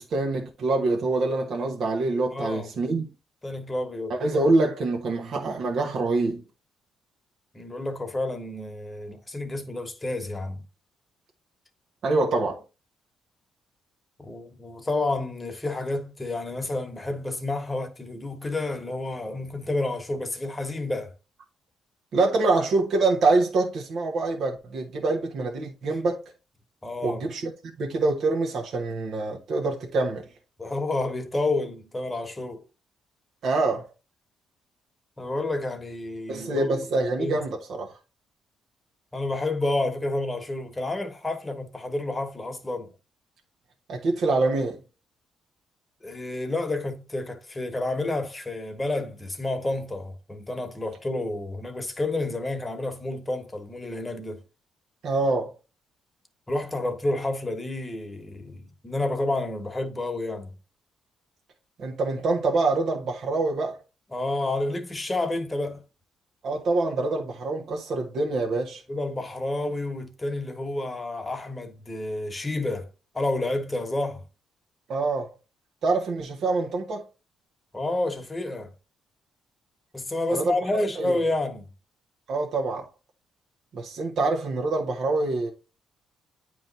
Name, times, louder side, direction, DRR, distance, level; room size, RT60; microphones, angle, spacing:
voice 1, 0.0-3.1 4.1-6.4 12.0-12.6 22.1-26.2 27.0-27.5 27.8-30.2 33.4-33.9 36.3-37.9 43.9-44.8 55.0-55.5 61.8-63.8 66.4-68.8 74.9-75.3 75.8-77.0 80.3-80.6 81.0-81.1 82.3-82.9 83.7-85.5, right 3 dB, 65° right, 1.1 m, -25 dB
voice 2, 2.3-2.7 3.4-4.1 7.5-10.6 14.2-21.1 26.8-27.3 30.6-32.6 35.2-36.7 37.2-37.5 39.1-42.9 46.0-54.4 56.5-60.5 64.1-65.8 68.9-72.9 73.1-74.2 77.7-78.7 79.9-81.7, left 2 dB, 20° left, 1.3 m, -30 dB
9.0 x 3.1 x 4.0 m
cardioid pair, 90°, 0 cm